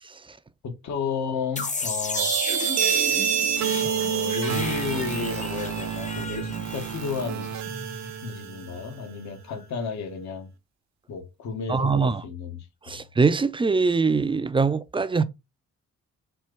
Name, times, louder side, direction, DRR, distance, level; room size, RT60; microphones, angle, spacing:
voice 1, 0.6-2.3 3.8-7.5 8.2-10.5 11.1-12.7 12.9-13.0, left 5 dB, 65° left, 1.3 m, -32 dB
sound 1, 1.6-8.3, left 3 dB, 25° left, 0.8 m, -34 dB
sound 2, 2.2-8.9, right 8 dB, 65° right, 0.8 m, -27 dB
voice 2, 11.7-12.2 12.9-15.2, right 4 dB, 15° right, 0.4 m, -22 dB
4.4 x 2.5 x 4.5 m
cardioid pair, 90°, 30 cm